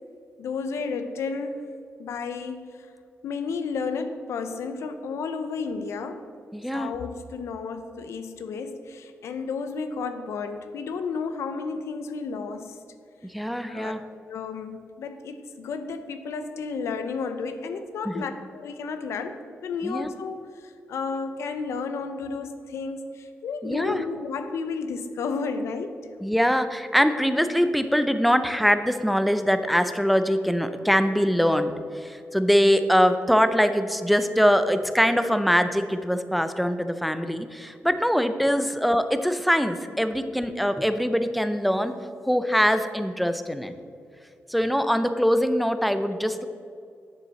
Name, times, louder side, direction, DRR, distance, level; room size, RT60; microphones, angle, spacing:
voice 1, 0.4-1.7 2.0-2.9 3.2-6.3 6.7-12.8 13.7-14.0 14.3-25.9, left 4 dB, 90° left, 9 dB, 0.7 m, -32 dB
voice 2, 6.5-6.9 13.3-14.0 18.1-18.2 19.8-20.1 23.6-24.0 26.2-42.0 42.2-43.7 44.5-46.5, equal, ahead, 9 dB, 0.5 m, -23 dB
9.1 x 6.9 x 4.1 m, 2.4 s
cardioid pair, 115°, 5 cm